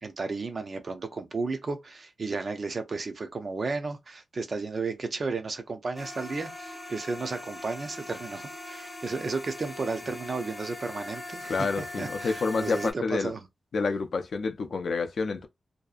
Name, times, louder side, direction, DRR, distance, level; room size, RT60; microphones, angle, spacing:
voice 1, 0.0-13.4, right 4 dB, 40° right, 0.4 m, -33 dB
sound 1, 6.0-12.9, left 1 dB, 20° left, 0.7 m, -41 dB
voice 2, 11.5-13.3 13.7-15.5, left 4 dB, 60° left, 0.4 m, -28 dB
2.6 x 2.3 x 2.4 m
wide cardioid pair, 165°, 0 cm